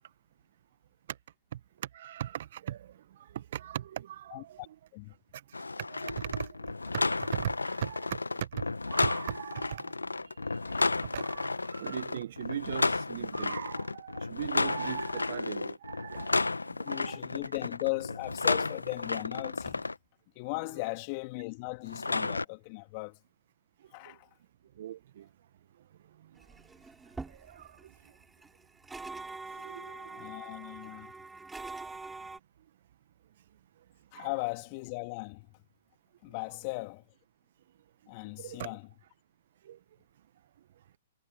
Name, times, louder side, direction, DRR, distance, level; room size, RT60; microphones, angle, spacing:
voice 1, 1.9-2.9 3.3-4.7 5.8-6.5 7.2-8.2 8.5-9.9 10.6-16.4 16.9-17.2 24.1-24.2 24.8-25.3 27.5-27.7 29.6-30.2 34.1-34.3 38.4-38.8 39.6-39.8, right 11 dB, 60° right, 1.4 m, -39 dB
voice 2, 4.3-4.7 4.9-5.1 16.7-19.9 20.3-23.2 23.9-24.3 30.1-31.1 34.1-35.5 36.2-37.1 38.1-38.8, left 29 dB, 40° left, 3.1 m, -37 dB
sound 1, 5.5-20.0 21.9-22.5, left 3 dB, 90° left, 1.4 m, -32 dB
sound 2, 26.4-32.4, right 3 dB, 10° right, 5.1 m, -44 dB
figure-of-eight pair, 115°, 0 cm